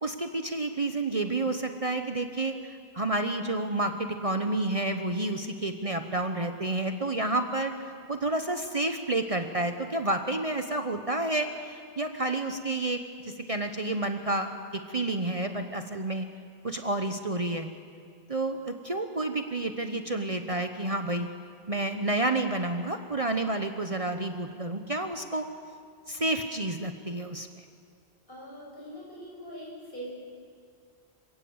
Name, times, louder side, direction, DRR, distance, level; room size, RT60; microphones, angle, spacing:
voice 1, 0.0-7.7 8.1-14.5 14.9-16.3 16.6-17.7 18.3-21.3 21.7-25.5 26.1-27.6, right 2 dB, 35° right, 6 dB, 1.0 m, -30 dB
voice 2, 28.3-30.1, right 1 dB, 55° left, -4 dB, 7.4 m, -42 dB
27.0 x 17.5 x 8.1 m, 2.2 s
omnidirectional pair, 1.1 m